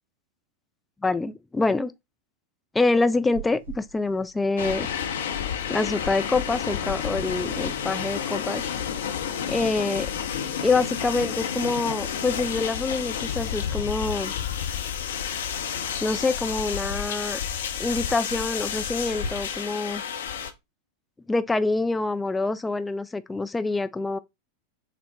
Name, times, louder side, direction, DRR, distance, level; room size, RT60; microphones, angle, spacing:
voice 1, 1.0-1.9 2.7-4.9 5.7-8.6 9.5-10.1 10.6-14.3 16.0-17.4 17.8-20.0 21.3-24.2, left 3 dB, 10° left, 0.3 m, -26 dB
Chewing mastication, 3.2-19.3, right 4 dB, 70° right, 1.2 m, -50 dB
sound 1, 4.6-20.5, left 8 dB, 60° left, 0.6 m, -30 dB
6.1 x 2.1 x 2.7 m
figure-of-eight pair, 90°, 0 cm